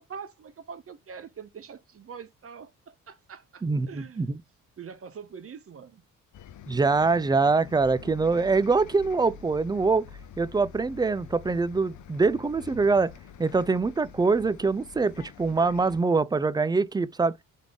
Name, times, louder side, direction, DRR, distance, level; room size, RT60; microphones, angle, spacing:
voice 1, 0.0-4.3 4.8-6.0, right 6 dB, 40° right, 1.0 m, -44 dB
voice 2, 3.6-4.4 6.7-10.1 10.4-13.1 13.4-17.3, right 4 dB, 15° right, 0.3 m, -24 dB
Bus, 6.3-16.0, left 8 dB, 60° left, 0.7 m, -46 dB
3.6 x 3.6 x 3.6 m
supercardioid pair, 70°, 33 cm